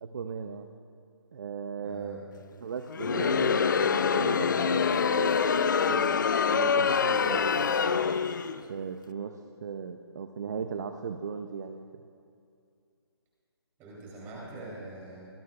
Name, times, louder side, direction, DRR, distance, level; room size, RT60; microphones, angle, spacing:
voice 1, 0.0-0.7 1.3-2.2 2.6-8.0 8.7-11.8, right 6 dB, 40° right, 7 dB, 0.6 m, -37 dB
voice 2, 1.8-2.2 13.8-15.2, right 2 dB, 15° right, -6 dB, 3.1 m, -43 dB
Crowd, 2.9-8.6, left 6 dB, 45° left, 0.4 m, -25 dB
24.0 x 13.0 x 2.3 m, 2.4 s
hypercardioid pair, 165°, 14 cm